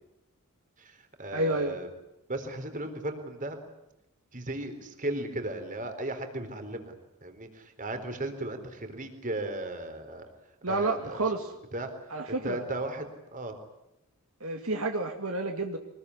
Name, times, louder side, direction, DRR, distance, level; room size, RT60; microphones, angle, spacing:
voice 1, 0.8-1.9 2.3-3.6 4.3-6.9 7.2-10.3 10.7-11.2 11.7-11.9 12.3-13.6, right 1 dB, 35° right, 7 dB, 4.1 m, -36 dB
voice 2, 1.3-1.8 10.6-11.5 12.1-12.6 14.4-15.8, right 2 dB, 70° right, 3 dB, 2.5 m, -30 dB
24.5 x 21.5 x 9.9 m, 0.88 s
head